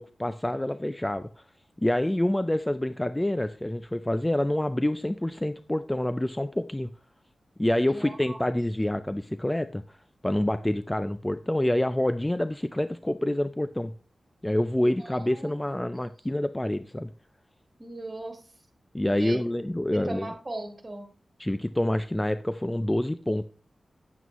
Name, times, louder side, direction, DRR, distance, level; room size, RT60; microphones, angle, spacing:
voice 1, 0.0-1.4 1.8-6.9 7.6-10.0 10.2-13.9 14.4-17.1 18.9-20.3 21.4-23.4, left 1 dB, 10° left, 11 dB, 0.3 m, -27 dB
voice 2, 7.9-8.5 15.0-15.9 17.8-18.4 19.1-19.4 19.9-21.0, right 2 dB, 25° right, 3 dB, 1.7 m, -38 dB
9.2 x 8.3 x 3.0 m, 0.39 s
wide cardioid pair, 105°, 0 cm